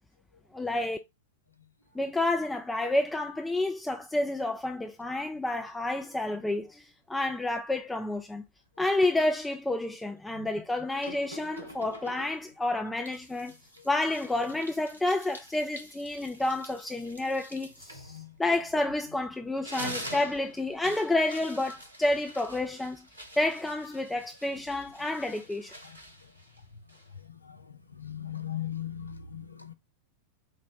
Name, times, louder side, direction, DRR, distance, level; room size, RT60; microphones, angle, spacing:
voice 1, 0.5-1.0 2.0-8.4 8.8-13.5 13.9-18.1 18.4-23.1 23.4-25.7, left 2 dB, 5° left, 0.4 m, -30 dB
sound 1, 11.0-12.6 13.1-19.1 19.4-27.3, equal, 85° right, 0.8 m, -46 dB
voice 2, 27.4-29.7, left 10 dB, 80° left, 0.5 m, -38 dB
5.0 x 2.0 x 4.2 m
figure-of-eight pair, 90°, 0 cm